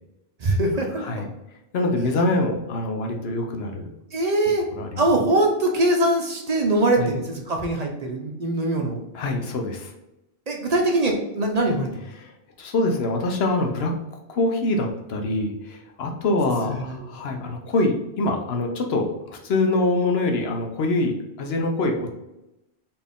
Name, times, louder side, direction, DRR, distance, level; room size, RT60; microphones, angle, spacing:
voice 1, 0.4-1.1 4.1-4.7 5.0-9.0 10.5-11.9 16.6-17.0, right 1 dB, 45° right, 2 dB, 0.6 m, -22 dB
voice 2, 0.9-1.3 1.7-3.9 4.8-5.0 7.0-7.1 9.1-9.9 12.2-13.9 14.3-22.1, left 2 dB, 75° left, 3 dB, 0.9 m, -24 dB
4.2 x 2.6 x 3.5 m, 0.91 s
omnidirectional pair, 1.1 m